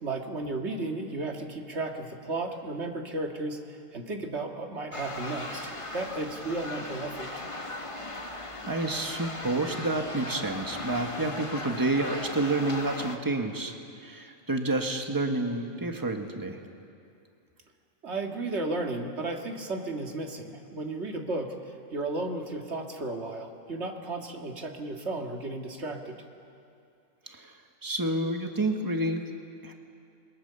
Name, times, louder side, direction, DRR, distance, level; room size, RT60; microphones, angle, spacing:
voice 1, 0.0-7.4 18.0-26.2, right 2 dB, 60° right, 2 dB, 2.3 m, -34 dB
sound 1, 4.9-13.2, left 2 dB, 25° left, 1.4 m, -38 dB
voice 2, 8.7-13.7 14.0-16.6 27.3-27.5 27.8-29.2 29.6-29.7, right 2 dB, 15° right, 4 dB, 1.6 m, -29 dB
29.5 x 22.5 x 7.0 m, 2.5 s
omnidirectional pair, 1.3 m